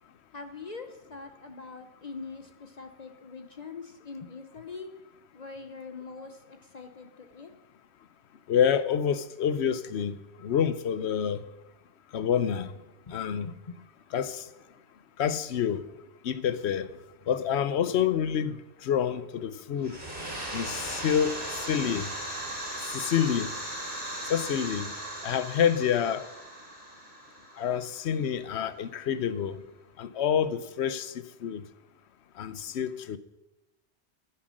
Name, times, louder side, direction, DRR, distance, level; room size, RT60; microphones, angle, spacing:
voice 1, 0.3-4.9 5.3-7.5 13.1-13.8, left 4 dB, 40° left, 0.9 m, -43 dB
voice 2, 8.5-11.4 12.1-12.7 13.1-13.5 14.1-14.4 15.2-15.8 16.2-16.9 17.3-18.6 18.8-20.0 20.5-22.1 22.9-23.5 24.3-24.9 25.2-26.2 27.6-29.6 30.0-31.6 32.4-33.2, left 8 dB, 75° left, 1.0 m, -27 dB
sound 1, 19.8-28.3, right 1 dB, 55° right, 3.5 m, -37 dB
10.0 x 9.8 x 6.3 m
omnidirectional pair, 1.1 m